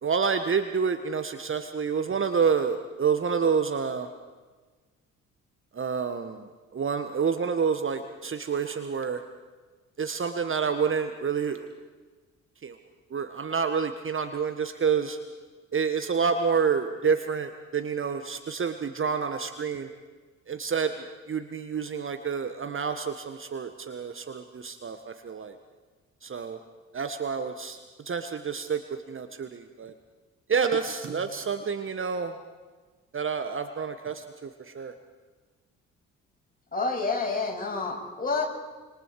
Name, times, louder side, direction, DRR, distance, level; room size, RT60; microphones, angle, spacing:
voice 1, 0.0-4.1 5.8-6.4 6.7-9.2 10.0-11.7 12.6-12.7 13.1-15.2 15.7-19.9 20.5-20.9 21.3-25.5 26.2-26.6 26.9-27.8 28.1-28.8 29.1-29.9 30.5-32.3 33.1-34.5 34.7-34.9, right 6 dB, 30° right, 8 dB, 1.5 m, -28 dB
voice 2, 36.7-38.4, left 4 dB, 20° left, -1 dB, 7.2 m, -28 dB
27.0 x 26.5 x 4.8 m, 1.3 s
figure-of-eight pair, 45°, 38 cm